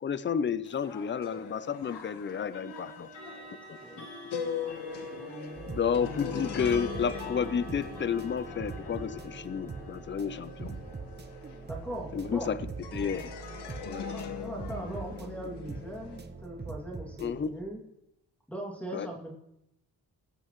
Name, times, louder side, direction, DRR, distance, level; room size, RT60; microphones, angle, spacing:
voice 1, 0.0-3.1 3.7-4.1 5.7-10.7 12.1-12.6 12.9-13.4 13.8-14.2 17.2-17.5 18.9-19.1, left 7 dB, 30° left, 15 dB, 0.6 m, -31 dB
sound 1, 0.6-0.8 2.5-15.4, left 1 dB, 50° left, 4.6 m, -48 dB
sound 2, 0.8-12.4 12.8-16.2, left 6 dB, 80° left, 1.4 m, -41 dB
voice 2, 5.1-5.6 10.1-10.3 11.6-12.6 14.1-17.8 18.5-19.3, right 1 dB, 5° left, -3 dB, 2.5 m, -40 dB
sound 3, 5.5-17.5, right 4 dB, 25° right, 0.9 m, -43 dB
21.5 x 7.9 x 3.1 m, 0.81 s
cardioid pair, 95°, 40 cm